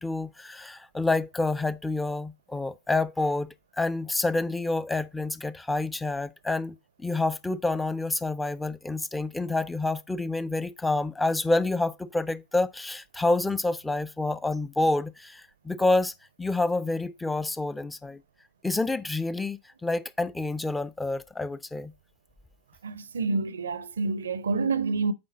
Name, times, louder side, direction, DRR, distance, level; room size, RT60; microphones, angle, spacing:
voice 1, 0.0-16.1 16.4-18.2 18.6-21.9, left 2 dB, 10° left, 0.5 m, -28 dB
voice 2, 22.8-25.1, right 4 dB, 70° right, 0.5 m, -28 dB
8.7 x 3.8 x 4.0 m
figure-of-eight pair, 90°, 0 cm